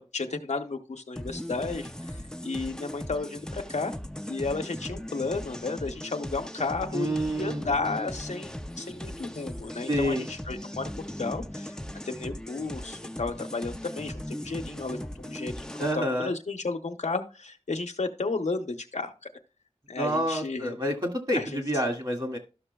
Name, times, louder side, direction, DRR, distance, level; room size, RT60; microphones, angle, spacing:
voice 1, 0.0-3.9 4.3-11.8 12.0-19.1 19.9-20.7 21.3-21.6, left 3 dB, 90° left, 5 dB, 0.8 m, -33 dB
sound 1, 1.2-15.9, left 1 dB, 5° left, 0.4 m, -38 dB
voice 2, 6.9-7.7 9.9-10.3 15.8-16.3 20.0-22.4, equal, 40° right, 3 dB, 1.8 m, -28 dB
12.5 x 6.0 x 2.3 m, 0.31 s
wide cardioid pair, 60°, 12 cm